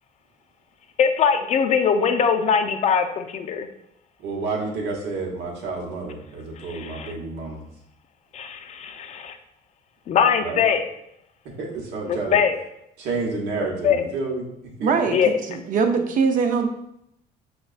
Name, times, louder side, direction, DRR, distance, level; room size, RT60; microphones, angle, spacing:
voice 1, 1.0-3.7 6.6-7.1 8.3-9.4 10.1-10.8 12.1-12.6 13.6-14.0 15.1-15.4, left 7 dB, 45° left, 7 dB, 0.4 m, -22 dB
voice 2, 4.2-7.7 10.4-10.6 11.6-12.4 13.0-15.2, right 3 dB, 80° right, -1 dB, 1.0 m, -30 dB
voice 3, 14.8-16.7, right 5 dB, 50° right, 5 dB, 0.5 m, -22 dB
5.8 x 2.3 x 2.4 m, 0.79 s
cardioid pair, 110°, 17 cm